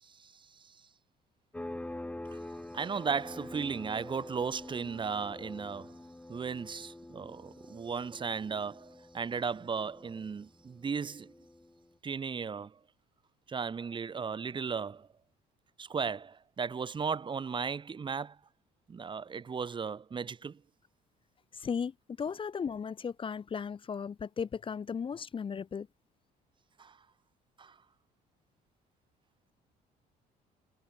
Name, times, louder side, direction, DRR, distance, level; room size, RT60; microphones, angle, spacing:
sound 1, 1.5-11.9, left 1 dB, 10° left, 6.4 m, -46 dB
voice 1, 2.7-5.9 6.3-11.3 12.0-12.7 13.5-15.1 15.8-18.4 18.9-20.6 26.8-26.9 27.6-27.7, right 6 dB, 30° right, 1.4 m, -36 dB
voice 2, 21.5-25.9, left 6 dB, 30° left, 0.8 m, -36 dB
cardioid pair, 110°, 17 cm